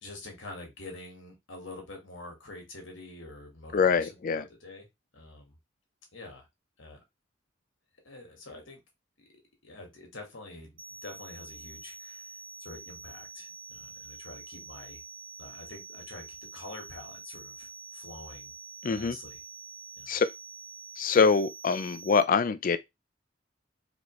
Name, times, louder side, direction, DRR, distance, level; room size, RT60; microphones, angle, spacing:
voice 1, 0.0-4.9 5.1-5.6 6.1-6.5 6.8-7.0 8.0-8.8 9.2-9.3 9.6-10.7 11.0-12.3 12.6-15.0 15.4-18.5 18.9-19.4 20.0-20.2, left 2 dB, 80° left, 1.7 m, -46 dB
voice 2, 3.7-4.4 18.8-19.2 20.1-20.3 21.0-22.8, left 5 dB, 45° left, 0.4 m, -24 dB
sound 1, 10.8-22.2, right 4 dB, 25° right, 0.9 m, -46 dB
4.3 x 2.9 x 3.0 m
head